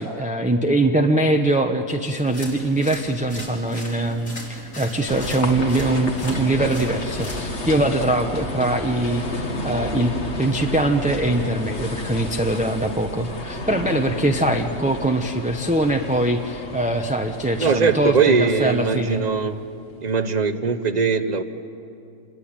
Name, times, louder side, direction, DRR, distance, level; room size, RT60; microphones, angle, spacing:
voice 1, 0.0-10.1 10.4-19.2, right 1 dB, 5° right, 3 dB, 0.8 m, -22 dB
sound 1, 2.1-7.7, left 1 dB, 75° left, 5.0 m, -39 dB
sound 2, 5.1-19.8, left 1 dB, 50° left, 2.2 m, -31 dB
voice 2, 17.6-19.6 20.0-21.4, right 5 dB, 35° right, 10 dB, 0.9 m, -20 dB
27.5 x 21.5 x 8.9 m, 2.6 s
omnidirectional pair, 1.5 m